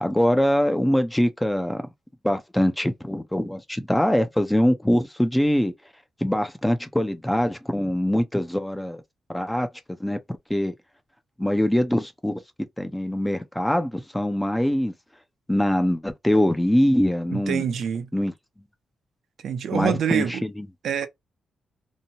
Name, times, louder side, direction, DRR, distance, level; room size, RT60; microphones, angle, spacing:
voice 1, 0.0-1.8 2.2-5.7 6.2-9.0 9.3-9.7 10.0-10.2 10.5-10.7 11.4-12.4 12.8-14.9 15.5-17.6 18.1-18.3 19.7-20.7, equal, 5° left, 0.4 m, -23 dB
voice 2, 17.3-18.1 19.4-20.4 20.8-21.1, right 8 dB, 70° right, 0.4 m, -26 dB
2.8 x 2.1 x 2.7 m
wide cardioid pair, 140°, 0 cm